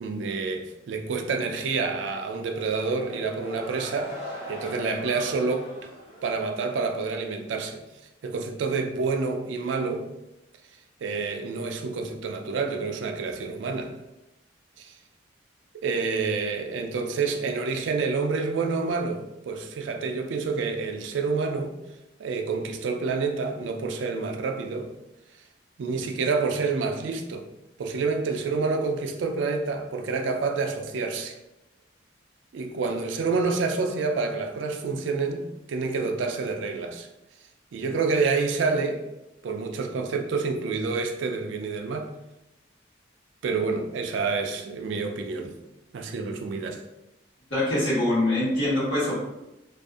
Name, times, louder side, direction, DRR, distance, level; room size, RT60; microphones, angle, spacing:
voice 1, 0.0-4.2 4.5-5.7 6.2-7.8 8.2-10.1 11.0-13.9 14.8-14.9 15.8-21.7 22.2-24.9 25.8-27.5 27.8-31.4 32.5-37.1 37.7-39.0 39.4-42.1 43.4-45.6 45.9-46.8, right 4 dB, 75° right, 5 dB, 0.3 m, -28 dB
sound 1, 2.5-6.9, equal, 30° left, 0.8 m, -40 dB
voice 2, 47.5-49.2, left 1 dB, 75° left, -9 dB, 1.3 m, -24 dB
2.6 x 2.3 x 2.3 m, 0.94 s
head